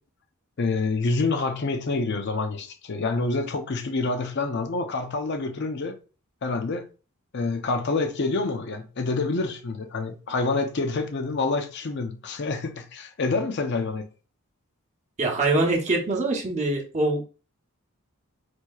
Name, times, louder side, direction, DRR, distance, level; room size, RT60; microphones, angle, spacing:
voice 1, 0.6-6.0 6.4-6.8 7.3-14.0, left 3 dB, 50° left, 0.5 m, -27 dB
voice 2, 15.2-17.2, right 2 dB, 30° right, 0.8 m, -24 dB
4.3 x 2.7 x 2.3 m
head